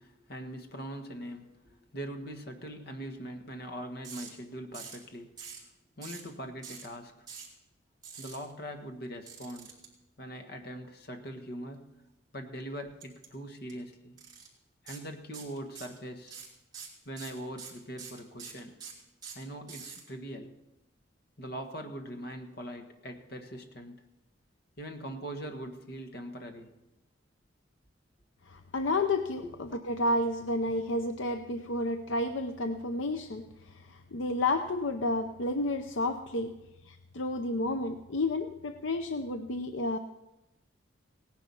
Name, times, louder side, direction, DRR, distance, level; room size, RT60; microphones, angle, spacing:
voice 1, 0.0-5.4 6.0-7.3 8.2-9.8 10.2-11.9 12.3-14.2 14.8-16.4 17.0-18.8 19.3-20.5 21.4-24.0 24.8-26.7, equal, 50° left, 5 dB, 1.5 m, -42 dB
sound 1, 4.0-4.3 4.7-5.0 5.4-5.6 6.0-6.3 6.6-6.9 7.3-7.5 8.0-8.4 9.3-9.9 13.0-13.3 13.6-13.7 14.2-14.5 14.9-15.0 15.3-16.0 16.3-20.0, right 6 dB, 20° right, 3.2 m, -45 dB
voice 2, 28.5-40.0, left 2 dB, 75° left, 7 dB, 0.7 m, -31 dB
17.5 x 10.5 x 5.5 m, 0.94 s
head